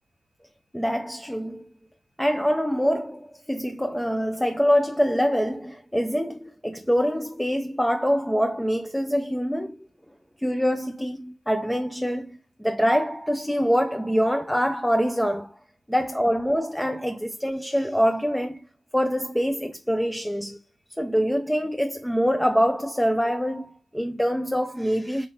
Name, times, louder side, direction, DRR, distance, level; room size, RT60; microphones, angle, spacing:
voice 1, 0.7-1.7 2.2-9.9 10.4-15.6 15.9-18.6 18.9-20.6 21.0-25.3, equal, 5° left, 0.3 m, -25 dB
3.8 x 2.7 x 3.1 m
cardioid pair, 60°, 0 cm